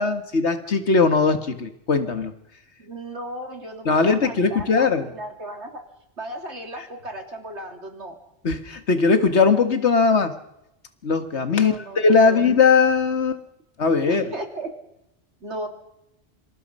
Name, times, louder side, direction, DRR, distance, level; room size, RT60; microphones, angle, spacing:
voice 1, 0.0-2.3 3.9-5.1 8.4-10.4 11.0-13.4 13.8-14.3, left 4 dB, 80° left, 9 dB, 2.0 m, -19 dB
voice 2, 2.8-5.8 6.2-8.2 11.5-12.4 14.1-14.7 15.4-15.7, right 1 dB, 90° right, 4 dB, 3.8 m, -35 dB
26.5 x 26.5 x 5.5 m, 0.84 s
omnidirectional pair, 1.1 m